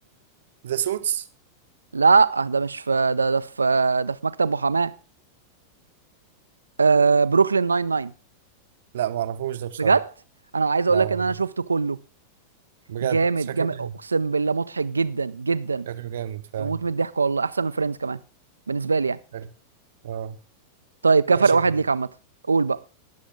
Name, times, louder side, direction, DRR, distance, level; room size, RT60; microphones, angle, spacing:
voice 1, 0.6-1.2 8.9-10.0 10.9-11.2 12.9-13.2 13.5-13.9 15.9-16.8 19.3-19.4 20.0-20.4 21.4-21.6, right 11 dB, 60° right, 0.8 m, -29 dB
voice 2, 1.9-4.9 6.8-8.1 9.8-10.1 10.5-12.0 13.0-15.9 16.6-18.2 18.7-19.2 21.0-22.1 22.5-22.8, right 4 dB, 75° right, 0.5 m, -21 dB
21.0 x 7.0 x 3.6 m
figure-of-eight pair, 90°, 0 cm